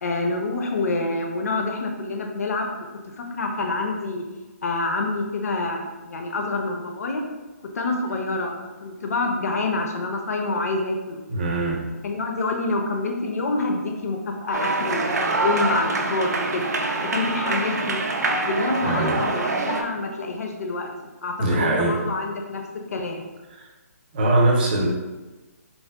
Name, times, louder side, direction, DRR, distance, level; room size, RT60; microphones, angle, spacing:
voice 1, 0.0-2.7 3.0-4.2 4.6-7.2 7.7-8.5 8.8-11.2 12.0-16.7 17.0-18.0 18.4-20.9 21.2-22.6 22.9-23.2, left 2 dB, 70° left, 3 dB, 0.4 m, -27 dB
voice 2, 11.3-11.9 18.8-19.2 21.4-22.0 23.5-23.7 24.1-24.9, right 2 dB, 35° right, -2 dB, 0.6 m, -22 dB
sound 1, 14.5-19.8, right 3 dB, 85° right, 0.4 m, -25 dB
3.8 x 2.0 x 2.2 m, 1.2 s
hypercardioid pair, 165°, 9 cm